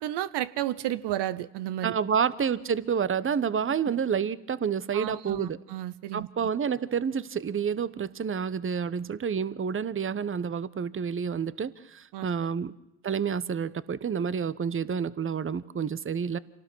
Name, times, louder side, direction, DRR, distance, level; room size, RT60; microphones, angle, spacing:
voice 1, 0.0-1.9 4.9-6.5 12.1-12.3, right 13 dB, 60° right, 15 dB, 1.1 m, -32 dB
voice 2, 1.8-5.6 6.1-12.7 13.0-16.4, right 7 dB, 25° right, 17 dB, 1.1 m, -29 dB
26.5 x 18.5 x 6.3 m, 0.90 s
hypercardioid pair, 65°, 45 cm